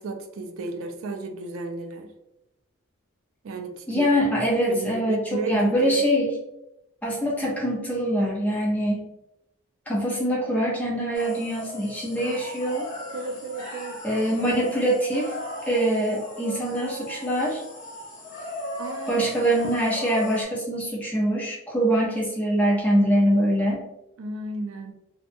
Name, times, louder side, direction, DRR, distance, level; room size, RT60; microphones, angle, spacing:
voice 1, 0.0-2.1 3.4-4.1 4.7-5.9 12.2-12.3 13.1-14.0 16.1-16.2 18.8-19.5 24.2-24.9, right 2 dB, 75° right, 4 dB, 0.4 m, -33 dB
voice 2, 3.9-6.3 7.0-9.1 9.9-12.9 14.0-15.3 15.7-17.6 19.1-23.8, equal, 5° left, -5 dB, 0.5 m, -24 dB
sound 1, 11.1-20.4, left 1 dB, 35° left, 0.9 m, -37 dB
2.7 x 2.2 x 2.5 m, 0.88 s
head